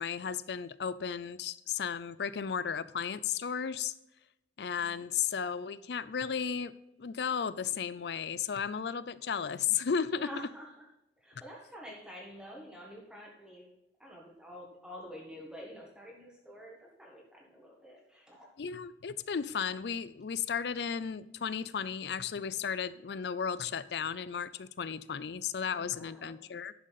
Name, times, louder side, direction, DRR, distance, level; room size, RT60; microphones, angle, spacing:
voice 1, 0.0-3.9 4.6-6.7 7.0-10.3 18.6-26.7, left 7 dB, 70° left, 16 dB, 0.4 m, -34 dB
voice 2, 10.1-10.9 11.2-13.7 14.0-18.5 25.7-26.5, equal, 5° right, -2 dB, 1.5 m, -48 dB
11.0 x 6.5 x 4.1 m, 0.87 s
head